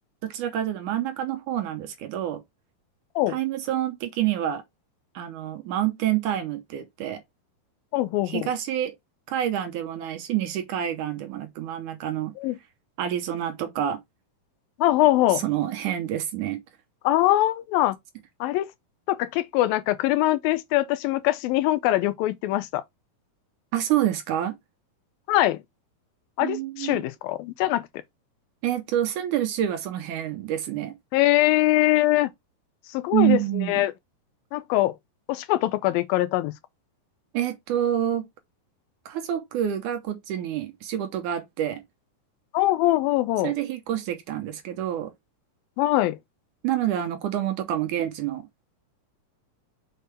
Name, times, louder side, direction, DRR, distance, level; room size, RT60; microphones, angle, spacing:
voice 1, 0.2-2.4 3.3-4.6 5.1-7.2 8.3-8.9 9.3-12.3 13.0-14.0 15.3-16.6 23.7-24.6 26.4-27.0 28.6-31.0 33.1-33.8 37.3-38.3 39.1-41.8 43.4-45.1 46.6-48.5, right 11 dB, 75° right, 2.1 m, -27 dB
voice 2, 7.9-8.5 12.4-12.6 14.8-15.4 17.0-18.0 18.4-18.7 19.1-22.8 25.3-25.6 26.4-27.9 31.1-32.3 32.9-33.9 34.5-34.9 35.3-36.5 42.5-43.5 45.8-46.2, left 16 dB, 85° left, 2.4 m, -22 dB
6.6 x 4.5 x 3.3 m
omnidirectional pair, 4.2 m